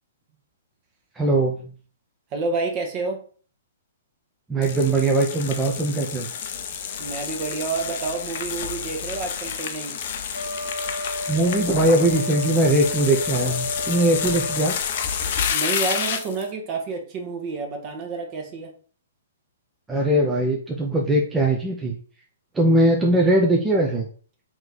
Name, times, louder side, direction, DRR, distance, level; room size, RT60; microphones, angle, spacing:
voice 1, 1.2-1.5 4.5-6.3 11.3-14.7 19.9-22.0 22.5-24.1, right 1 dB, 10° right, -1 dB, 0.5 m, -20 dB
voice 2, 2.3-3.2 7.0-10.0 15.5-18.7, right 4 dB, 35° right, 4 dB, 1.0 m, -29 dB
sound 1, 4.6-16.5, left 7 dB, 50° left, 0.5 m, -29 dB
Wind instrument woodwind instrument, 10.3-14.8, left 1 dB, 80° right, 1.2 m, -32 dB
3.0 x 2.9 x 3.8 m, 0.42 s
figure-of-eight pair, 120°, 0 cm